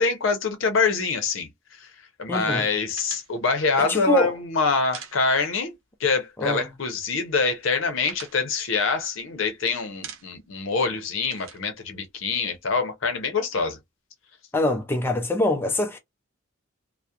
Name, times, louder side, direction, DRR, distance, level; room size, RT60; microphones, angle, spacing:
voice 1, 0.0-1.5 2.2-13.8, left 4 dB, 70° left, 0.6 m, -25 dB
voice 2, 2.3-2.7 3.8-4.3 6.4-6.7 14.5-16.0, left 2 dB, 10° left, 0.3 m, -24 dB
sound 1, 3.0-5.8 6.0-6.2 6.5-7.2 7.5-9.5 9.8-10.6 10.8-12.7, right 7 dB, 80° right, 0.7 m, -44 dB
2.3 x 2.1 x 2.7 m
head